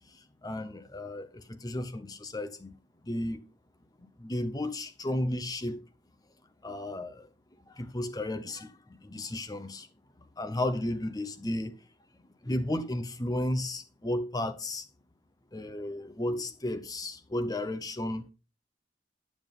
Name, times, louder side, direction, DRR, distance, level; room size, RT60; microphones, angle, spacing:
voice 1, 0.4-2.7 3.1-3.4 4.2-5.8 6.6-7.2 7.8-8.7 9.0-9.9 10.4-11.7 12.5-14.8 15.5-18.2, left 1 dB, 20° left, 0.7 m, -33 dB
10.5 x 7.1 x 3.8 m
head